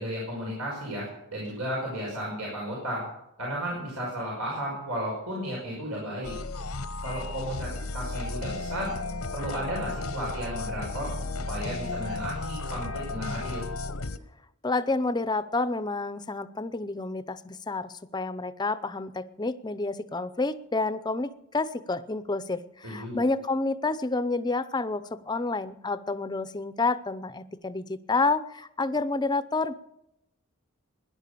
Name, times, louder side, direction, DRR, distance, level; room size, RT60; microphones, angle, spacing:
voice 1, 0.0-3.0 3.4-6.4 7.0-8.9 9.3-11.1 11.5-13.7 22.8-23.2, equal, 85° right, -3 dB, 5.6 m, -34 dB
sound 1, 6.2-14.2, left 3 dB, 85° left, 1.0 m, -34 dB
voice 2, 14.6-29.7, left 3 dB, 20° left, 13 dB, 0.6 m, -29 dB
17.5 x 11.0 x 6.9 m, 0.84 s
head